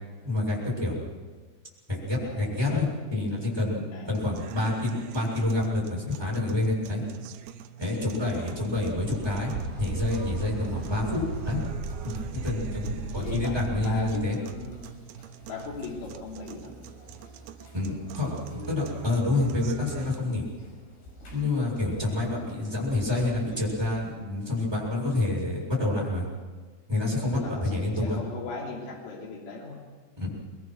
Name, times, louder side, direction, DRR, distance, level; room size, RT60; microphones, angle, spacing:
voice 1, 0.2-1.0 1.9-7.0 7.8-11.6 12.0-12.1 12.4-14.4 17.7-20.4 21.3-26.2 26.9-28.2 30.2-30.3, left 2 dB, 5° right, -4 dB, 6.8 m, -28 dB
voice 2, 2.2-2.8 3.9-4.2 8.3-8.6 13.1-15.0 15.5-16.8 22.0-22.2 27.1-29.8, left 4 dB, 80° left, -3 dB, 6.0 m, -39 dB
sound 1, 4.2-20.2, right 8 dB, 75° right, 2.7 m, -44 dB
sound 2, 8.9-14.1, right 4 dB, 35° right, 6.7 m, -36 dB
sound 3, 10.1-24.1, right 1 dB, 55° left, 8.4 m, -46 dB
25.0 x 21.5 x 6.4 m, 1.5 s
omnidirectional pair, 5.5 m